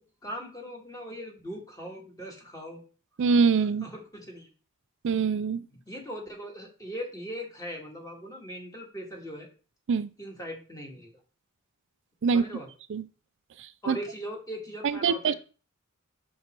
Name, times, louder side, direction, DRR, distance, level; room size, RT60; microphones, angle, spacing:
voice 1, 0.2-2.8 3.8-4.5 5.7-9.5 10.2-11.1 12.3-12.7 13.8-15.3, equal, 15° left, 1.7 m, -40 dB
voice 2, 3.2-3.8 5.0-5.6 9.9-10.1 12.2-12.4 12.9-13.0 13.6-14.0 14.8-15.3, right 5 dB, 60° right, 0.4 m, -24 dB
5.5 x 5.2 x 4.4 m
head